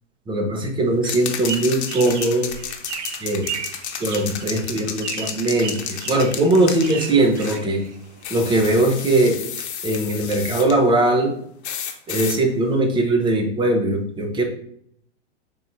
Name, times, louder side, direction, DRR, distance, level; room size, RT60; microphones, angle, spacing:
voice 1, 0.3-2.5 3.2-3.5 4.0-7.8 8.3-9.4 9.8-11.3 12.1-14.4, right 2 dB, 15° right, 3 dB, 0.7 m, -20 dB
sound 1, 1.0-7.7 8.2-10.8 11.6-12.4, left 8 dB, 70° left, 0.8 m, -32 dB
sound 2, 1.2-8.2, right 7 dB, 80° right, 0.7 m, -35 dB
3.7 x 2.7 x 4.4 m, 0.67 s
hypercardioid pair, 125°, 34 cm